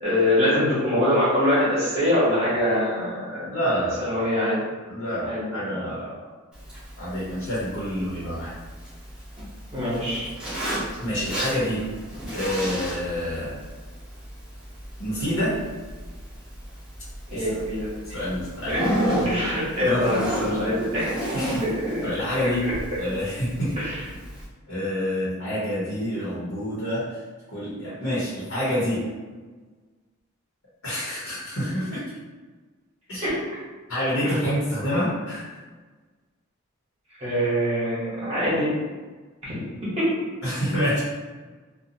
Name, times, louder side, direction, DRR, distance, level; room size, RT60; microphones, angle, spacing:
voice 1, 0.0-3.5 4.0-4.6 5.2-5.7 9.7-10.3 17.3-18.2 18.7-18.8 19.2-21.1 21.6-22.1 23.8-23.9 33.2-33.3 37.2-38.7 39.4-39.5 39.8-40.0, left 1 dB, 30° right, -9 dB, 1.0 m, -24 dB
voice 2, 3.4-4.0 4.9-6.1 7.0-8.6 11.0-11.9 12.3-13.5 15.0-15.6 17.3-17.5 18.1-18.9 19.2-19.3 19.8-20.8 21.3-21.6 22.0-22.6 23.0-23.8 24.7-27.0 27.5-29.0 30.8-32.0 33.1-33.3 33.9-35.6 40.4-41.0, equal, 70° left, -9 dB, 1.0 m, -27 dB
Zipper (clothing), 6.5-24.4, equal, 5° right, 0.9 m, -33 dB
2.7 x 2.2 x 2.7 m, 1.4 s
head